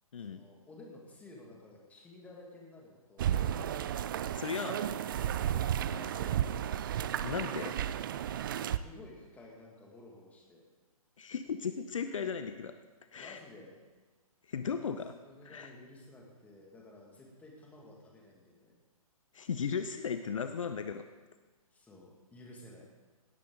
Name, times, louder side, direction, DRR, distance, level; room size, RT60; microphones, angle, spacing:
voice 1, 0.2-3.4 5.8-6.6 8.8-10.6 13.2-13.8 15.2-18.7 21.7-22.9, left 2 dB, 10° left, -1 dB, 2.1 m, -53 dB
sound 1, 3.2-8.8, right 10 dB, 35° right, 0.4 m, -33 dB
voice 2, 4.3-5.0 7.2-7.8 11.2-12.8 13.1-13.4 14.5-15.1 15.4-15.7 19.3-21.1, left 6 dB, 60° left, 9 dB, 0.7 m, -36 dB
17.5 x 9.9 x 3.9 m, 1.3 s
figure-of-eight pair, 130°, 19 cm